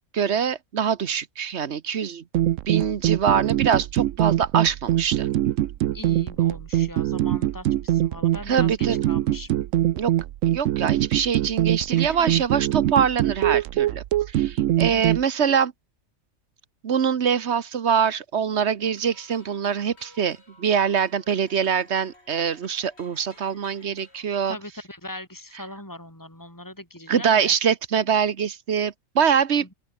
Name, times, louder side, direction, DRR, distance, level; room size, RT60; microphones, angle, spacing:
voice 1, 0.1-2.2 2.7-5.3 8.5-9.0 9.9-10.1 10.5-14.0 14.3-15.7 16.8-24.6 27.1-29.7, right 7 dB, 60° right, 1.2 m, -24 dB
sound 1, 2.3-15.2, right 13 dB, 85° right, 1.0 m, -23 dB
voice 2, 5.9-9.6 12.1-12.4 14.9-15.2 24.5-27.5, left 1 dB, 15° left, 5.4 m, -40 dB
sound 2, 18.8-24.3, left 1 dB, 55° left, 6.9 m, -54 dB
open air
omnidirectional pair, 1.3 m